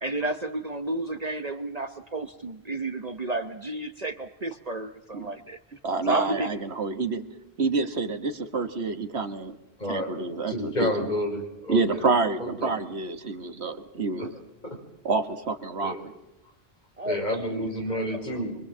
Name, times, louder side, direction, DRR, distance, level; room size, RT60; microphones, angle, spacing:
voice 1, 0.0-5.6 6.0-6.6 17.0-17.2 17.5-18.2, right 2 dB, 40° right, 9 dB, 1.1 m, -31 dB
voice 2, 5.8-7.2 7.6-9.6 9.9-11.1 11.7-14.3 15.0-16.0, right 3 dB, 80° right, 9 dB, 1.8 m, -28 dB
voice 3, 9.8-10.1 10.5-12.1 12.4-12.7 14.2-14.3 14.6-14.8 15.8-16.0 17.1-18.6, left 1 dB, 45° left, 2 dB, 5.5 m, -30 dB
25.0 x 24.5 x 7.5 m, 0.91 s
omnidirectional pair, 1.1 m